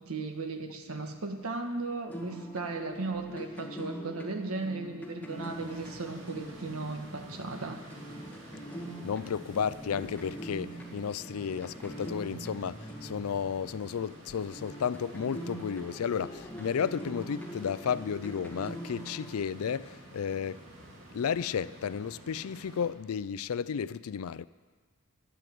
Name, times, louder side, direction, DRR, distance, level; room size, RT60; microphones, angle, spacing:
voice 1, 0.0-7.8, right 3 dB, 80° right, 1.6 m, -36 dB
sound 1, 2.1-14.1 14.5-19.3, right 1 dB, 5° left, 1.7 m, -43 dB
sound 2, 5.3-22.9, right 1 dB, 55° right, 3.2 m, -49 dB
voice 2, 9.0-20.6 21.1-24.5, left 7 dB, 80° left, 0.4 m, -33 dB
12.0 x 9.7 x 7.7 m
head